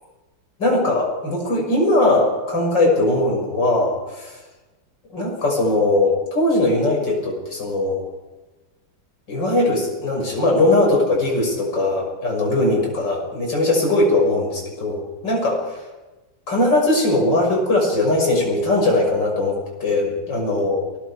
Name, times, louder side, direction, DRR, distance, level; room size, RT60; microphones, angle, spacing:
voice 1, 0.6-4.4 5.1-8.0 9.3-15.6 16.5-20.8, left 2 dB, 65° left, 0 dB, 6.7 m, -20 dB
29.5 x 20.0 x 4.9 m, 1.2 s
omnidirectional pair, 2.1 m